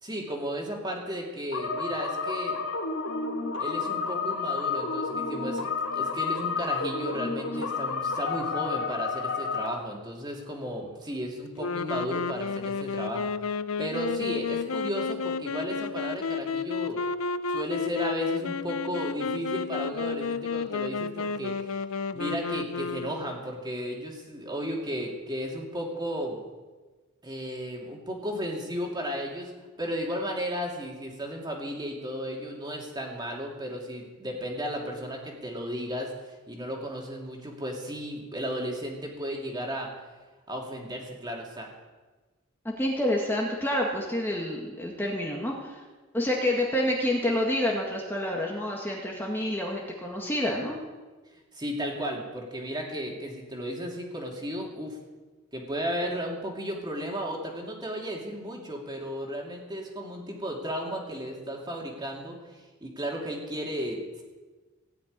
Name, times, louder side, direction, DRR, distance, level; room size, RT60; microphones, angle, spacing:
voice 1, 0.0-2.6 3.6-17.0 17.5-21.8 22.1-26.4 27.2-29.5 29.8-39.9 40.5-41.7 51.5-55.0 55.5-62.4 62.8-64.2, equal, 20° right, 0 dB, 2.8 m, -34 dB
sound 1, 1.5-9.7, left 4 dB, 70° left, 2.5 m, -30 dB
sound 2, 11.6-23.4, left 5 dB, 90° left, 0.6 m, -31 dB
voice 2, 42.7-45.8 46.1-50.8, left 1 dB, 10° left, -2 dB, 1.8 m, -28 dB
16.5 x 6.7 x 9.6 m, 1.3 s
head